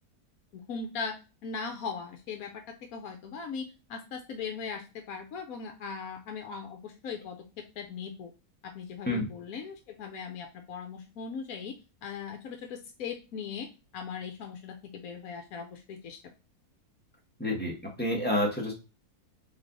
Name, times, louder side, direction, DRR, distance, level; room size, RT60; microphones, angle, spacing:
voice 1, 0.5-1.1 1.4-2.6 2.9-8.3 8.6-11.7 12.0-13.7 13.9-16.2, left 5 dB, 70° left, 5 dB, 1.1 m, -39 dB
voice 2, 17.4-18.7, left 1 dB, 5° left, -2 dB, 1.3 m, -29 dB
4.0 x 3.2 x 4.0 m, 0.31 s
omnidirectional pair, 1.7 m